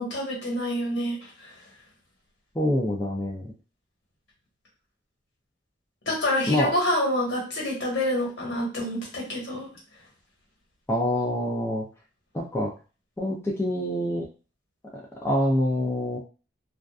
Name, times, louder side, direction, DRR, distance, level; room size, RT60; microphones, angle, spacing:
voice 1, 0.0-1.5 6.1-9.7, left 1 dB, 65° left, -3 dB, 1.3 m, -27 dB
voice 2, 2.5-3.5 6.5-6.7 10.9-11.9 12.3-12.7 13.2-14.3 15.2-16.2, left 1 dB, 15° left, -2 dB, 0.4 m, -26 dB
2.5 x 2.3 x 2.3 m, 0.33 s
head